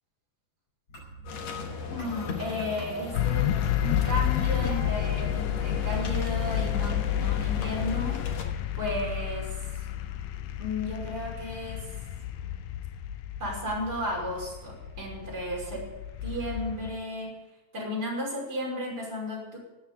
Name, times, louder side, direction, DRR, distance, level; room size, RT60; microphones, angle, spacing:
sound 1, 0.9-6.9, right 3 dB, 25° left, 6.0 m, -45 dB
sound 2, 1.2-8.4, left 5 dB, 60° left, 2.5 m, -37 dB
voice 1, 1.9-3.5 3.8-9.5 10.6-11.9 13.4-15.8 16.2-17.3 17.7-19.6, left 1 dB, 30° right, -4 dB, 6.1 m, -34 dB
sound 3, 3.1-16.9, left 11 dB, 80° left, 2.3 m, -31 dB
13.5 x 9.5 x 8.5 m, 1.1 s
omnidirectional pair, 3.8 m